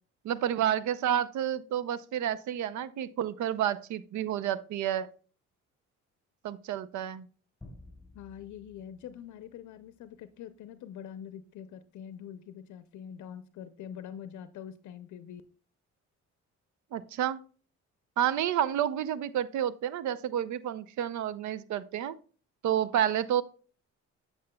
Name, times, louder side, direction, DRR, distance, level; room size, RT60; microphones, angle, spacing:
voice 1, 0.2-5.1 6.4-7.3 16.9-17.4 18.2-22.2 22.6-23.4, right 10 dB, 75° right, 17 dB, 0.6 m, -30 dB
sound 1, 7.6-10.2, left 2 dB, ahead, 3.8 m, -53 dB
voice 2, 8.1-15.4, left 9 dB, 75° left, 12 dB, 0.6 m, -44 dB
8.6 x 8.1 x 2.2 m, 0.39 s
cardioid pair, 90°, 30 cm